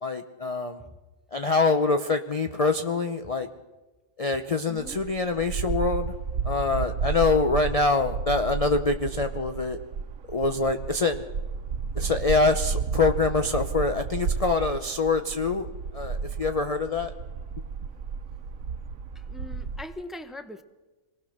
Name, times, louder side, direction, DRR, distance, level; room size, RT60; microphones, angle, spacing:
voice 1, 0.0-0.8 1.3-3.5 4.2-6.1 6.4-9.8 10.3-11.3 11.9-15.7 15.9-17.1, left 3 dB, 35° left, 6 dB, 0.7 m, -25 dB
voice 2, 4.7-5.0 19.1-20.6, left 1 dB, ahead, 9 dB, 0.9 m, -41 dB
sound 1, 4.8-19.8, right 5 dB, 80° right, 1.4 m, -32 dB
25.5 x 19.0 x 6.5 m, 1.2 s
omnidirectional pair, 1.4 m